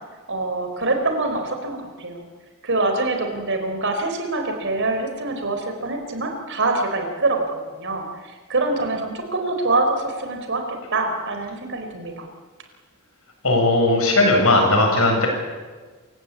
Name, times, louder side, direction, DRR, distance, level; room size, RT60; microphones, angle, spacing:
voice 1, 0.3-2.3 2.6-7.4 7.7-12.3, right 2 dB, 60° right, 5 dB, 4.4 m, -25 dB
voice 2, 13.4-15.3, left 2 dB, 75° left, 2 dB, 7.4 m, -17 dB
27.0 x 16.5 x 8.6 m, 1.4 s
head